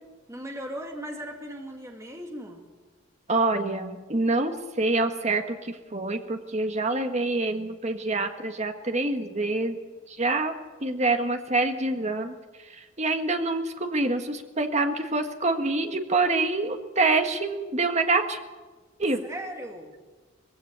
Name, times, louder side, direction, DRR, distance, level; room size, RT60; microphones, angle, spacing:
voice 1, 0.3-2.6 19.2-19.9, equal, 15° right, 2 dB, 2.1 m, -37 dB
voice 2, 3.3-9.8 10.1-10.5 10.8-12.3 13.0-18.4 19.0-19.2, right 2 dB, 35° right, 6 dB, 1.6 m, -26 dB
20.0 x 16.0 x 8.2 m, 1.3 s
head